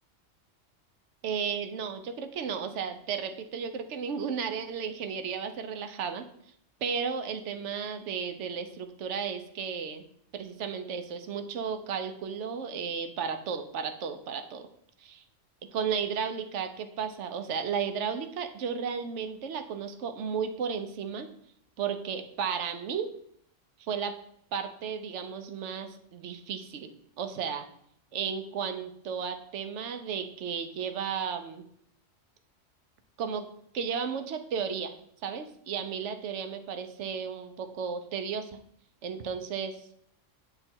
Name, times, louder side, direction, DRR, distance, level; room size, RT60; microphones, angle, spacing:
voice 1, 1.2-6.3 6.8-10.0 10.3-14.7 15.0-15.2 15.7-21.3 21.8-23.1 23.8-24.1 24.5-26.9 27.2-27.6 28.1-31.7 33.2-33.5 33.7-34.9 35.2-38.5 39.0-39.8, right 6 dB, 70° right, 8 dB, 1.0 m, -34 dB
7.9 x 3.2 x 4.4 m, 0.68 s
omnidirectional pair, 1.3 m